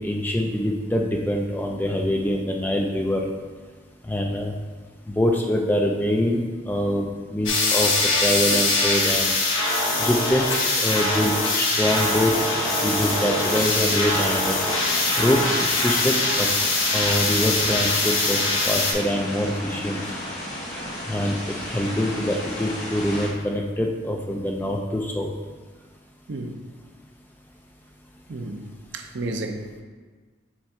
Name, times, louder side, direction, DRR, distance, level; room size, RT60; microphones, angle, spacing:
voice 1, 0.0-3.3 4.0-4.5 5.1-9.4 10.0-10.5 10.8-12.3 12.8-14.6 15.2-15.4 15.7-16.5 16.9-20.1 21.1-25.3, left 1 dB, 10° left, 1 dB, 0.4 m, -24 dB
sound 1, 7.5-18.9, left 2 dB, 80° left, 1.2 m, -23 dB
sound 2, 12.1-23.3, left 1 dB, 40° left, 1.3 m, -33 dB
voice 2, 28.3-28.7 28.9-29.8, right 2 dB, 60° right, 4 dB, 0.5 m, -32 dB
6.2 x 3.7 x 4.4 m, 1.4 s
head